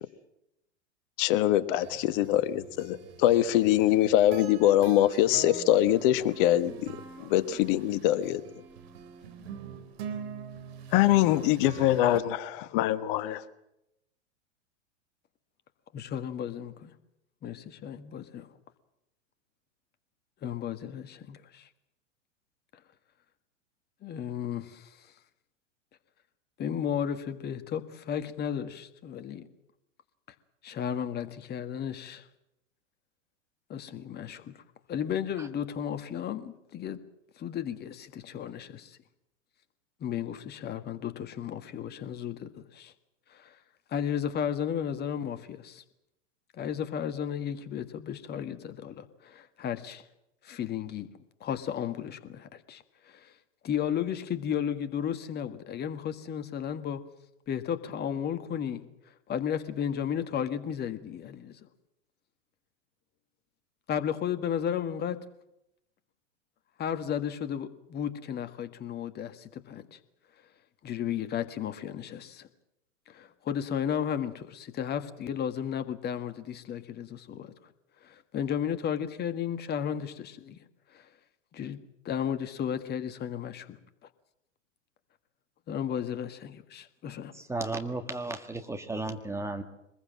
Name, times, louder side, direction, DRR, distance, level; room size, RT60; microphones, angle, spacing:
voice 1, 1.2-6.9 7.2-8.4 10.9-13.4, left 13 dB, 45° left, 14 dB, 1.3 m, -23 dB
sound 1, 1.8-12.2, right 7 dB, 55° right, 3.4 m, -44 dB
voice 2, 15.9-16.9 17.4-18.5 20.4-21.7 24.0-25.1 26.6-29.5 30.6-32.2 33.7-34.6 34.9-37.0 37.4-39.0 40.0-42.9 43.3-43.6 43.9-45.8 46.5-50.0 50.4-51.1 51.4-53.3 53.6-57.0 57.5-58.9 59.3-61.6 63.9-65.2 66.8-70.0 70.8-72.5 73.1-77.5 78.0-80.6 80.9-81.1 81.5-81.8 82.0-83.8 85.7-87.3, left 9 dB, 25° left, 10 dB, 1.7 m, -34 dB
voice 3, 87.3-89.6, right 2 dB, 5° right, 6 dB, 1.7 m, -34 dB
23.5 x 21.0 x 7.6 m, 0.84 s
figure-of-eight pair, 100°, 37 cm